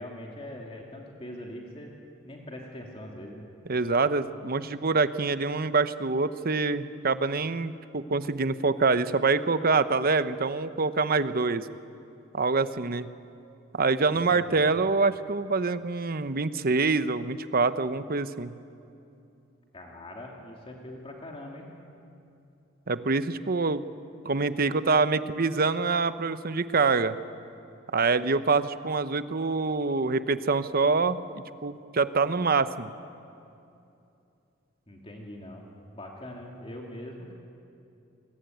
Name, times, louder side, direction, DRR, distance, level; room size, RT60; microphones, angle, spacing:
voice 1, 0.0-1.9 2.2-3.5 14.1-14.7 19.7-21.7 34.9-35.7 35.9-37.4, left 1 dB, 30° left, -1 dB, 2.7 m, -42 dB
voice 2, 3.7-11.7 12.3-13.1 13.7-18.6 22.9-23.9 24.2-27.2 27.9-32.9, right 4 dB, 50° right, 12 dB, 0.9 m, -25 dB
28.0 x 21.5 x 9.3 m, 2.7 s
head